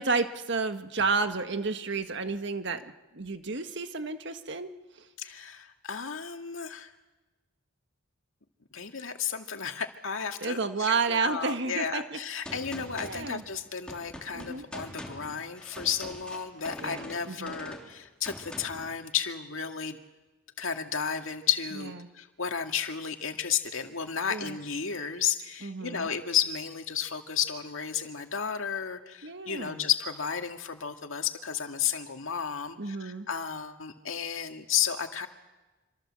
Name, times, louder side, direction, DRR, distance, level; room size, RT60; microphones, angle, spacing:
voice 1, 0.0-4.7 10.4-12.2 12.9-13.4 14.3-14.6 16.8-17.5 24.3-24.6 25.6-26.1 29.2-29.9 32.8-33.3, right 4 dB, 60° right, 8 dB, 1.6 m, -31 dB
voice 2, 5.2-6.9 8.7-20.0 20.6-35.3, left 8 dB, 75° left, 5 dB, 2.1 m, -33 dB
Gunshot gunfire, 12.4-18.9, left 1 dB, 5° left, 3.6 m, -44 dB
26.5 x 26.5 x 7.7 m, 1.1 s
head